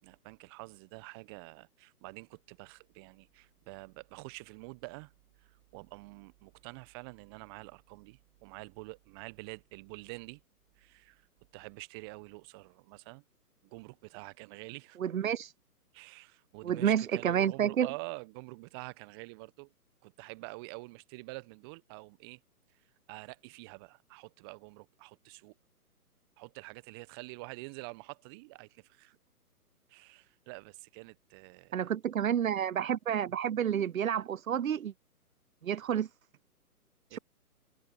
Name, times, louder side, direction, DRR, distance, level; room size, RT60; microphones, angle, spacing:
voice 1, 0.0-5.1 5.4-10.4 10.8-11.3 11.5-13.2 13.6-15.0 15.9-19.7 20.0-22.4 22.7-22.8 23.1-25.5 26.4-29.2 29.9-31.8 37.1-37.2, right 28 dB, 15° right, 1.0 m, -47 dB
voice 2, 15.0-15.5 16.6-17.9 31.7-34.9 35.6-36.1, right 9 dB, 60° right, 0.7 m, -29 dB
figure-of-eight pair, 135°, 46 cm